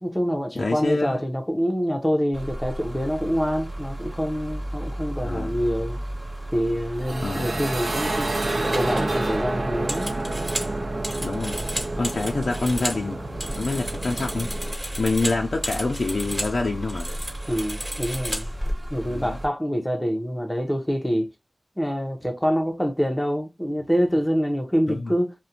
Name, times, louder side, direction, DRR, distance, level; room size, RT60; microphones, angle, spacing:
voice 1, 0.0-6.0 6.5-8.3 8.7-10.2 17.5-18.5 18.9-21.3 21.8-25.3, equal, 5° left, 0.6 m, -26 dB
voice 2, 0.6-1.2 5.2-5.6 7.2-7.6 11.2-11.6 12.0-13.2 13.6-14.5 15.0-17.1 19.1-19.4 24.9-25.1, left 3 dB, 90° left, 0.3 m, -26 dB
sound 1, 2.3-19.5, right 1 dB, 45° right, 1.1 m, -35 dB
sound 2, 6.9-14.7, right 2 dB, 75° right, 0.5 m, -29 dB
sound 3, 8.6-13.0 13.3-16.6 16.8-18.7, equal, 20° right, 1.2 m, -33 dB
2.4 x 2.1 x 2.8 m
wide cardioid pair, 75°, 0 cm